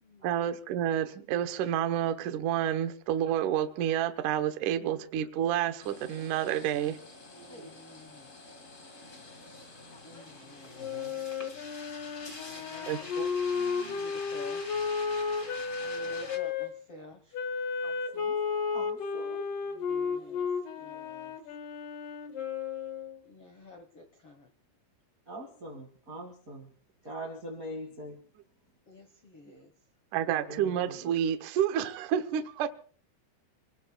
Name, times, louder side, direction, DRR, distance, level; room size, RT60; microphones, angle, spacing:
voice 1, 0.2-7.0 12.9-14.0 30.1-32.7, right 10 dB, 80° right, 1.8 m, -30 dB
sound 1, 5.8-16.4, left 2 dB, 35° left, 1.2 m, -47 dB
voice 2, 7.2-8.3 10.0-10.9 12.4-13.1 13.8-14.6 15.8-17.4 19.7-20.5 20.8-21.4 23.2-24.5 28.9-29.7, left 2 dB, 85° left, 1.2 m, -51 dB
Wind instrument woodwind instrument, 10.8-16.7 17.3-23.2, left 5 dB, 55° left, 2.9 m, -33 dB
voice 3, 17.8-18.4 18.7-19.4 25.3-26.7 27.0-28.2 30.5-31.1, right 1 dB, 35° right, 1.4 m, -43 dB
28.0 x 19.5 x 2.3 m
omnidirectional pair, 5.1 m